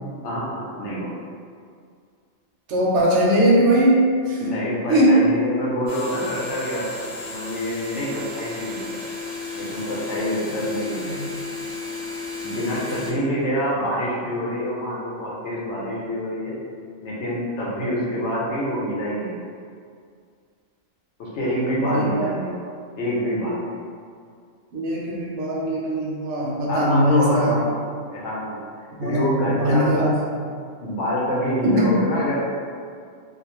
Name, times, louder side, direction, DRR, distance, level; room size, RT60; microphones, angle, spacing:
voice 1, 0.2-1.1 4.4-8.8 9.6-11.2 12.4-16.5 17.0-19.4 21.2-22.6 22.9-23.7 26.7-27.8 28.1-28.6 29.0-30.1 30.8-32.4, equal, 65° left, -5 dB, 0.9 m, -26 dB
voice 2, 2.7-4.5 4.9-5.3 11.1-11.3 21.8-22.3 24.7-27.6 29.0-30.1 31.6-32.0, right 1 dB, 70° right, -4 dB, 0.8 m, -20 dB
sound 1, 5.9-13.1, left 3 dB, 30° right, 0.4 m, -33 dB
2.4 x 2.1 x 3.0 m, 2.2 s
omnidirectional pair, 1.4 m